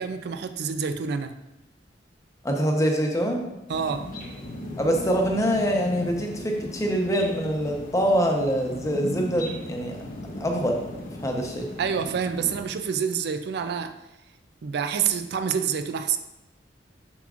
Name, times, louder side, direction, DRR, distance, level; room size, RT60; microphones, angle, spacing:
voice 1, 0.0-1.4 3.7-4.1 11.8-14.0 14.6-16.2, right 7 dB, 65° right, 10 dB, 0.4 m, -27 dB
voice 2, 2.4-3.5 4.8-10.0 10.4-11.7, equal, 20° left, 1 dB, 0.9 m, -25 dB
sound 1, 3.7-12.7, left 1 dB, 50° left, 1.0 m, -37 dB
7.0 x 6.0 x 2.5 m, 0.97 s
head